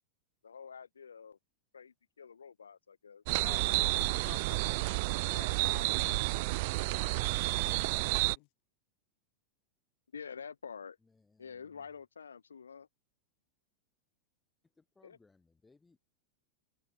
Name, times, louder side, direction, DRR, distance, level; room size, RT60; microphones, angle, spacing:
voice 1, 0.4-1.4 1.7-3.2 3.6-3.9 4.7-4.8 10.1-11.0 11.4-12.9 15.0-15.2, left 6 dB, 70° left, 1.1 m, -48 dB
sound 1, 3.3-8.4, right 25 dB, 50° right, 0.5 m, -30 dB
voice 2, 3.4-6.5 8.3-8.5, left 37 dB, 45° left, 2.4 m, -50 dB
voice 3, 11.0-11.9 14.8-16.0, left 3 dB, 10° left, 3.9 m, -66 dB
figure-of-eight pair, 90°, 0 cm